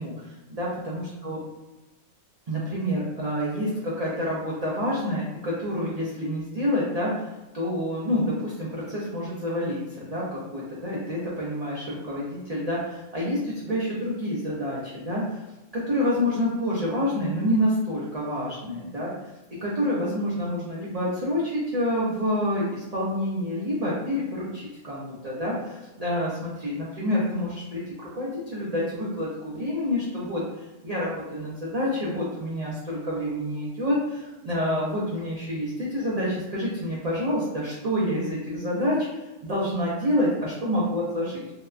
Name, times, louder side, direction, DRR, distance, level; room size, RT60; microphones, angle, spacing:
voice 1, 0.0-1.4 2.5-7.3 7.5-15.4 15.7-19.1 19.6-41.4, left 1 dB, 60° right, -7 dB, 0.4 m, -28 dB
2.8 x 2.2 x 2.3 m, 1.0 s
omnidirectional pair, 1.4 m